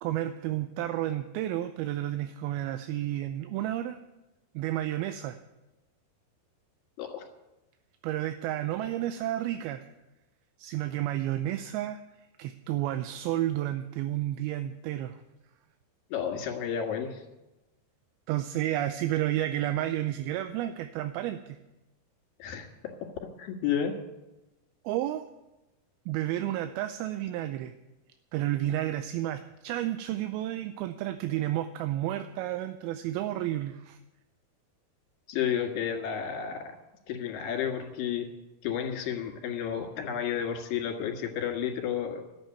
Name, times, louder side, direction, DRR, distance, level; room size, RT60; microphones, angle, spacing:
voice 1, 0.0-4.0 4.6-5.4 8.0-9.8 10.6-12.0 12.4-15.2 18.3-21.6 24.9-25.2 26.1-27.7 28.3-34.0, right 13 dB, 80° right, 9 dB, 2.5 m, -31 dB
voice 2, 16.1-17.2 22.4-22.7 23.4-23.9 35.3-36.8 37.1-38.3 38.6-42.2, left 8 dB, 65° left, 2 dB, 3.5 m, -31 dB
13.5 x 7.8 x 9.2 m, 1.0 s
omnidirectional pair, 4.5 m